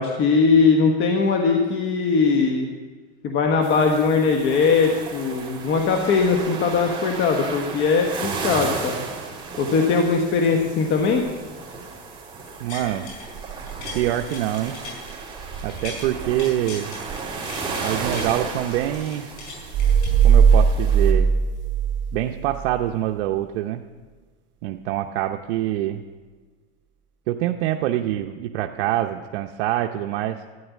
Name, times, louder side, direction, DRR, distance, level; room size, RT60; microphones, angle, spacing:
voice 1, 0.0-2.7 3.2-9.0 9.6-11.2, left 4 dB, 35° left, 2 dB, 1.3 m, -20 dB
sound 1, 3.6-21.1, right 4 dB, 15° right, 2.7 m, -34 dB
sound 2, 12.4-13.3 13.6-16.1 16.4-18.3 18.7-20.7 21.2-21.3, left 3 dB, 70° left, 5.4 m, -39 dB
voice 2, 12.6-13.1 13.9-14.8 15.6-16.9 17.8-19.3 20.2-21.3 22.1-23.8 24.6-26.0 27.3-30.4, right 13 dB, 75° right, 4 dB, 0.8 m, -25 dB
sound 3, 19.7-22.7, right 6 dB, 35° right, 0.9 m, -18 dB
13.0 x 9.7 x 8.3 m, 1.4 s
supercardioid pair, 140°, 33 cm